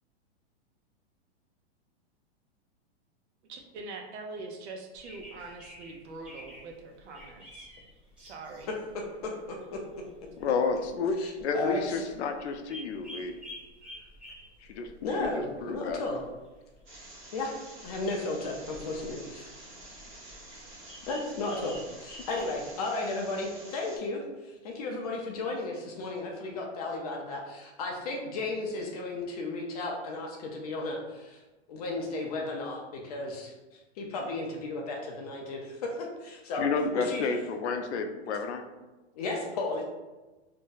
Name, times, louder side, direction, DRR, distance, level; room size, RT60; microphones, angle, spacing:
voice 1, 3.5-7.7 8.2-8.7, right 3 dB, 80° right, 2 dB, 0.7 m, -43 dB
sound 1, 4.9-22.7, equal, 5° right, 0.6 m, -51 dB
voice 2, 9.5-9.8 11.2-12.0 15.0-16.2 17.3-17.5 17.8-18.5 18.9-19.2 21.1-31.4 31.7-33.5 34.0-35.9 36.2-36.7 36.9-37.2 39.1-39.8, left 2 dB, 35° left, 0 dB, 0.4 m, -34 dB
voice 3, 10.4-11.2 11.4-13.3 14.6-14.9 15.2-16.0 36.5-38.6, left 4 dB, 90° left, 6 dB, 0.5 m, -30 dB
sound 2, 16.9-24.0, right 1 dB, 30° right, 0.9 m, -49 dB
2.6 x 2.1 x 3.8 m, 1.1 s
supercardioid pair, 155°, 33 cm